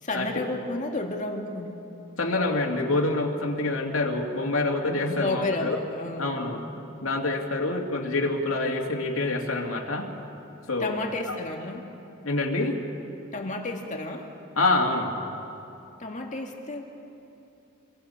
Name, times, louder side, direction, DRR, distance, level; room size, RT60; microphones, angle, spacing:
voice 1, 0.0-1.8 5.1-6.8 10.8-11.8 13.3-14.3 16.0-16.8, left 2 dB, 40° left, 2 dB, 1.8 m, -32 dB
voice 2, 2.2-5.8 6.2-6.6 7.0-10.1 10.7-11.0 11.3-11.4 12.2-12.8 14.6-15.1, left 2 dB, 85° left, 0 dB, 2.4 m, -26 dB
27.5 x 23.0 x 5.7 m, 2.8 s
head